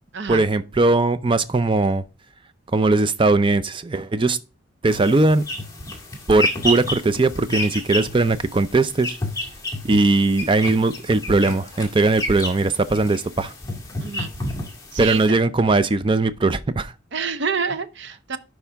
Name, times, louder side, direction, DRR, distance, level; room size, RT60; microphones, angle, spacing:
voice 1, 0.3-2.0 2.7-4.4 4.8-5.4 6.3-9.1 9.8-13.5 15.0-16.9, right 3 dB, 25° right, 0.4 m, -19 dB
sound 1, 4.9-15.3, left 1 dB, 15° left, 1.9 m, -31 dB
voice 2, 14.0-14.3 14.9-15.2 17.1-18.4, right 5 dB, 60° right, 0.7 m, -27 dB
11.5 x 4.9 x 3.5 m
head